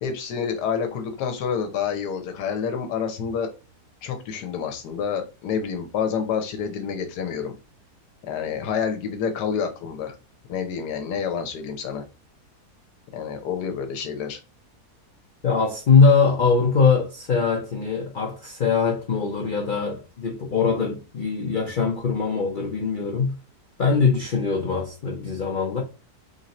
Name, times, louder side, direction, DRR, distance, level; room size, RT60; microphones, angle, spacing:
voice 1, 0.0-3.5 4.0-7.5 8.3-10.1 10.5-12.0 13.1-14.4, left 7 dB, 85° left, 1.3 m, -28 dB
voice 2, 15.4-23.3 23.8-25.8, left 5 dB, 55° left, 0.5 m, -22 dB
3.6 x 2.6 x 4.1 m
omnidirectional pair, 1.7 m